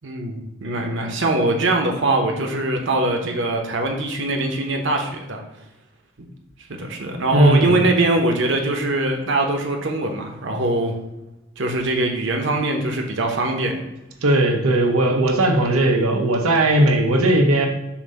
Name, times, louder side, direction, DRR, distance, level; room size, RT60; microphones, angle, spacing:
voice 1, 0.0-5.4 6.7-10.9 11.6-13.8, right 2 dB, 60° right, 3 dB, 0.9 m, -22 dB
voice 2, 7.3-7.8 14.2-17.7, right 1 dB, 90° right, 2 dB, 0.7 m, -17 dB
7.1 x 2.6 x 5.3 m, 0.97 s
head